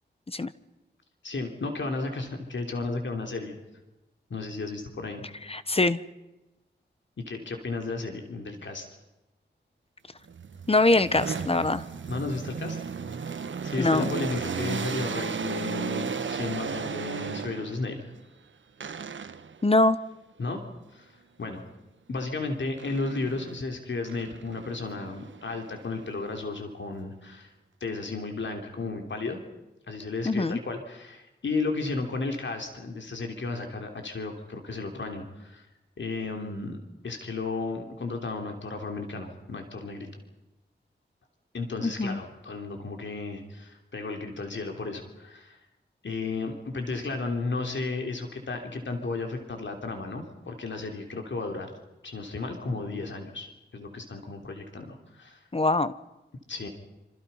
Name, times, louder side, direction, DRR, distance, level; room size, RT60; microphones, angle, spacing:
voice 1, 1.2-3.6 4.3-5.3 7.2-8.9 12.1-12.8 13.1-13.3 13.6-18.0 20.4-20.6 20.9-21.1 21.4-21.6 22.1-27.5 27.8-29.4 29.9-35.7 36.0-36.8 37.0-40.1 41.5-45.6 46.0-51.7 52.0-53.5 53.7-55.4 56.5-56.7, left 3 dB, 75° left, 4 dB, 3.4 m, -33 dB
voice 2, 5.5-6.0 10.7-11.8 13.8-14.1 19.6-20.0 30.2-30.6 41.8-42.2 55.5-55.9, left 2 dB, 30° left, 14 dB, 1.0 m, -23 dB
sound 1, 10.3-17.9 18.8-19.6 22.8-23.6 24.1-26.4, right 6 dB, 85° right, 1.1 m, -35 dB
27.0 x 26.5 x 5.7 m, 1.0 s
wide cardioid pair, 100°, 19 cm